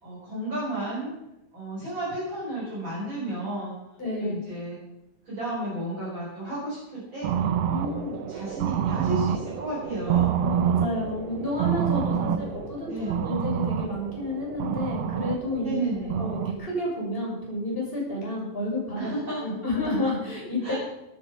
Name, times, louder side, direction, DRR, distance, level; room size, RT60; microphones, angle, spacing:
voice 1, 0.0-1.1 1.5-3.7 4.2-4.8 5.3-10.4 12.1-12.5 12.9-13.3 15.6-16.3 19.0-19.4 20.6-20.7, right 1 dB, 35° right, -8 dB, 5.5 m, -33 dB
voice 2, 4.0-4.5 7.7-8.1 10.4-19.1 19.4-20.7, left 2 dB, 15° left, -4 dB, 6.6 m, -30 dB
sound 1, 7.2-16.5, right 9 dB, 80° right, 1.4 m, -28 dB
18.5 x 10.5 x 5.5 m, 0.93 s
omnidirectional pair, 3.9 m